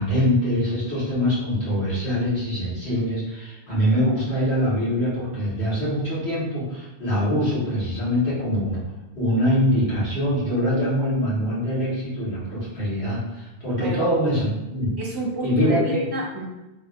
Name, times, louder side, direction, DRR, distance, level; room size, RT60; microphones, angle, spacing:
voice 1, 0.0-8.8 9.1-14.9 15.4-16.0, equal, 70° left, -9 dB, 1.9 m, -23 dB
voice 2, 15.0-16.4, right 1 dB, 25° right, -3 dB, 0.6 m, -29 dB
3.5 x 2.7 x 2.5 m, 1.0 s
omnidirectional pair, 1.1 m